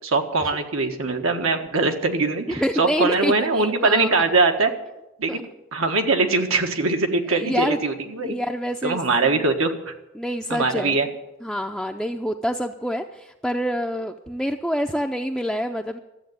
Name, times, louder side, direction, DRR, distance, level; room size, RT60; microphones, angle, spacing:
voice 1, 0.0-4.7 5.2-5.4 5.7-8.4 8.8-9.9 10.5-11.1, right 3 dB, 90° right, 5 dB, 1.5 m, -22 dB
voice 2, 2.6-4.1 5.3-5.4 7.3-7.8 8.2-9.0 10.2-11.0 11.4-16.0, equal, ahead, 2 dB, 0.4 m, -27 dB
13.0 x 8.0 x 9.4 m, 0.95 s
head